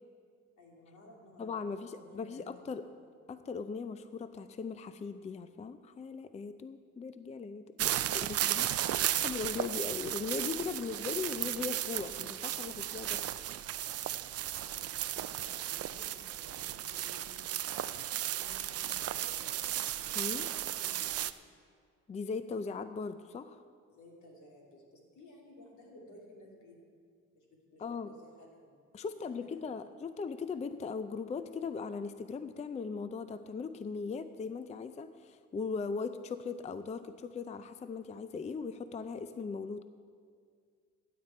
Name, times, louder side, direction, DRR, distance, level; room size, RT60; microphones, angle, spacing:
voice 1, 0.6-2.5 2.8-3.1 7.9-8.8 14.7-17.8 18.3-19.5 20.2-21.1 23.9-26.9 27.3-28.7 29.0-29.7, left 1 dB, 75° left, -2 dB, 2.9 m, -57 dB
voice 2, 1.4-2.8 3.3-13.2 20.1-20.5 22.1-23.6 27.8-28.1 28.9-39.9, left 5 dB, 25° left, 11 dB, 0.4 m, -39 dB
sound 1, 7.8-21.3, right 12 dB, 55° right, 0.4 m, -35 dB
15.5 x 8.5 x 4.4 m, 2.1 s
cardioid pair, 90°, 30 cm